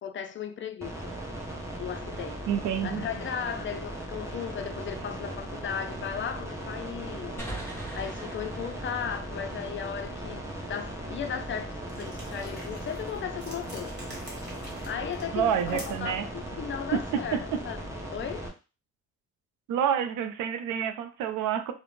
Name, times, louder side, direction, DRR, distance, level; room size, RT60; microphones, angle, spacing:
voice 1, 0.0-1.2 1.8-2.4 2.8-7.3 7.9-14.0 14.9-18.5, left 8 dB, 40° left, 0.4 m, -36 dB
sound 1, 0.8-18.5, right 1 dB, 10° right, 0.7 m, -38 dB
voice 2, 2.5-3.0 15.3-16.3 16.9-17.4 19.7-21.7, right 8 dB, 90° right, 0.5 m, -28 dB
sound 2, 7.4-10.9, right 1 dB, 5° left, 1.0 m, -43 dB
sound 3, 11.8-16.2, right 1 dB, 35° right, 1.2 m, -47 dB
2.5 x 2.1 x 3.0 m
cardioid pair, 90°, 30 cm